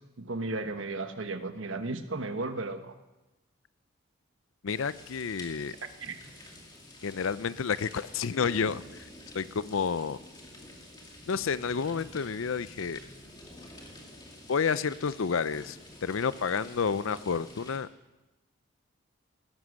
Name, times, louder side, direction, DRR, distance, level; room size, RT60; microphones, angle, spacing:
voice 1, 0.2-2.9 6.0-6.1, right 2 dB, 70° right, 8 dB, 1.2 m, -34 dB
voice 2, 4.6-5.8 7.0-9.1 9.3-10.2 11.3-13.0 14.5-17.9, left 6 dB, 75° left, 16 dB, 0.5 m, -30 dB
sound 1, 4.7-17.8, left 1 dB, 20° left, 2.3 m, -49 dB
16.5 x 13.0 x 6.3 m, 1.1 s
head